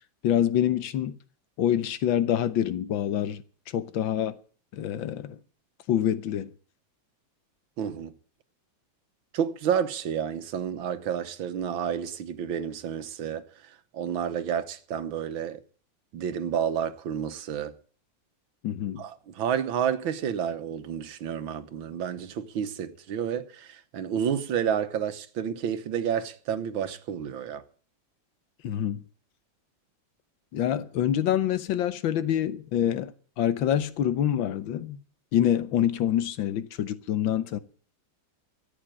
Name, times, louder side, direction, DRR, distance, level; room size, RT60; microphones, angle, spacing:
voice 1, 0.2-1.1 1.6-3.4 3.7-4.3 4.7-5.3 5.9-6.5 18.6-19.0 28.6-29.0 30.5-33.1 33.4-35.0 35.3-37.6, left 10 dB, 85° left, 1.7 m, -26 dB
voice 2, 7.8-8.1 9.3-15.6 16.1-17.7 19.0-27.6, right 8 dB, 90° right, 1.9 m, -30 dB
14.0 x 8.7 x 9.0 m
omnidirectional pair, 2.1 m